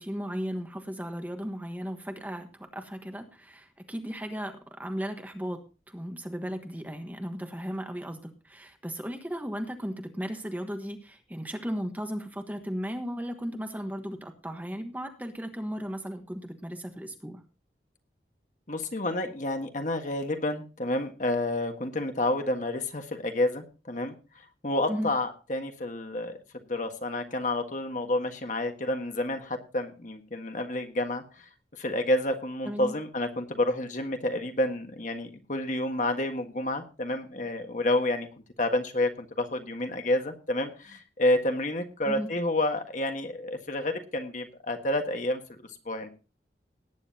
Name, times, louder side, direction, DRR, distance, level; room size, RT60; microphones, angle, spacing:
voice 1, 0.0-5.6 5.9-17.4 24.9-25.1 32.7-32.9 42.0-42.3, equal, 10° right, 5 dB, 1.3 m, -36 dB
voice 2, 18.7-24.1 24.6-26.4 26.7-31.4 31.8-38.3 38.6-45.4 45.8-46.1, left 1 dB, 45° left, 5 dB, 1.6 m, -29 dB
18.5 x 9.9 x 2.8 m, 0.33 s
head